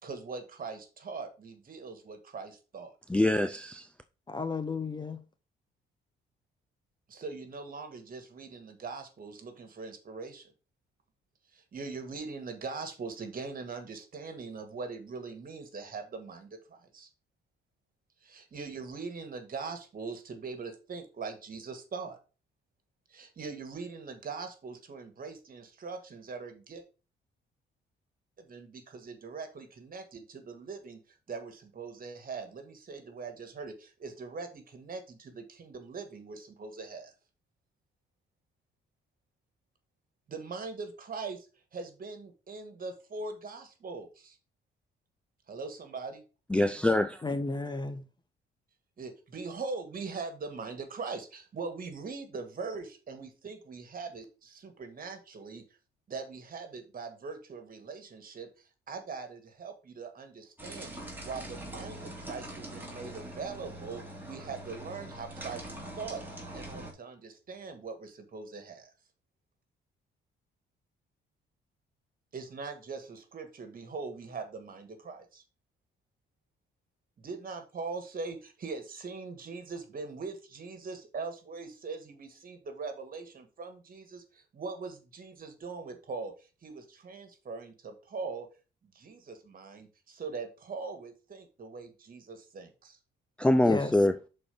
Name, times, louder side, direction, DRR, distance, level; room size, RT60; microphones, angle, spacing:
voice 1, 0.0-3.0 7.1-10.5 11.5-17.1 18.2-22.2 23.1-26.8 28.4-37.1 40.3-41.5 41.7-44.4 45.5-46.2 49.0-55.6 56.1-60.9 61.2-66.2 66.5-68.9 72.3-75.4 77.2-86.3 86.6-88.5 88.9-93.0, right 4 dB, 45° right, 1.9 m, -41 dB
voice 2, 3.1-3.9 46.5-47.2 93.4-94.1, left 1 dB, 5° left, 0.4 m, -24 dB
voice 3, 4.3-5.2 47.2-48.1 93.6-93.9, left 3 dB, 20° left, 0.8 m, -33 dB
sound 1, 60.6-66.9, right 1 dB, 10° right, 2.9 m, -43 dB
6.3 x 4.4 x 5.1 m
cardioid pair, 90°, 20 cm